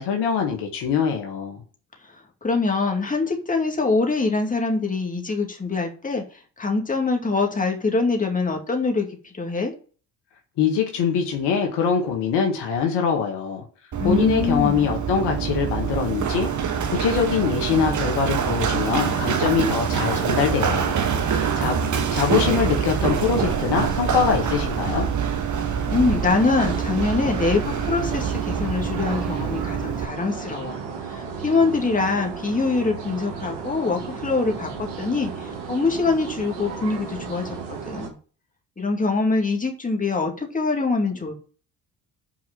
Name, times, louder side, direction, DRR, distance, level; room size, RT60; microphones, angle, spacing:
voice 1, 0.0-1.6 10.6-13.6 14.0-16.5 16.9-21.8 22.1-25.1, left 7 dB, 65° left, 1.8 m, -23 dB
voice 2, 2.4-6.2 6.6-9.7 14.0-14.9 25.9-30.8 31.0-37.6 37.9-38.1 38.8-41.4, left 3 dB, 20° left, 2.2 m, -24 dB
Run, 13.9-30.0, right 7 dB, 40° right, 1.2 m, -25 dB
sound 1, 26.3-38.1, right 5 dB, 65° right, 2.2 m, -34 dB
6.0 x 4.6 x 6.0 m
hypercardioid pair, 55°, 45 cm